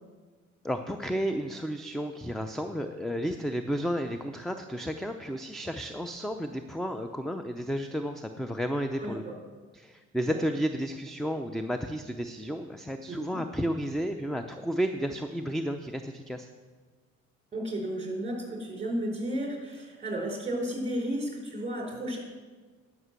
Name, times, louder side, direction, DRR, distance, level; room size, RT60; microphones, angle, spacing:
voice 1, 0.6-9.2 9.7-16.5, equal, ahead, 7 dB, 0.5 m, -32 dB
voice 2, 13.1-13.4 17.5-22.2, right 1 dB, 20° right, 0 dB, 4.1 m, -33 dB
11.0 x 6.0 x 7.7 m, 1.4 s
cardioid pair, 90°, 30 cm